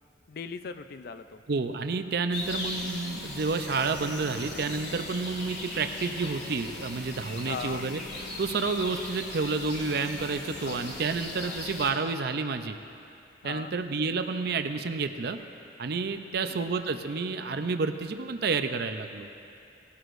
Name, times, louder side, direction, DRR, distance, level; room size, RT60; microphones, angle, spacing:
voice 1, 0.3-1.4 7.4-7.9 10.6-10.9 11.4-11.7 13.4-13.7 16.3-16.6, left 5 dB, 55° left, 11 dB, 0.4 m, -39 dB
voice 2, 1.5-8.0 8.4-12.8 13.4-15.4 15.8-19.3, right 4 dB, 60° right, 8 dB, 0.5 m, -30 dB
sound 1, 2.3-11.9, left 2 dB, 70° left, 2.5 m, -38 dB
18.5 x 12.5 x 2.6 m, 2.7 s
head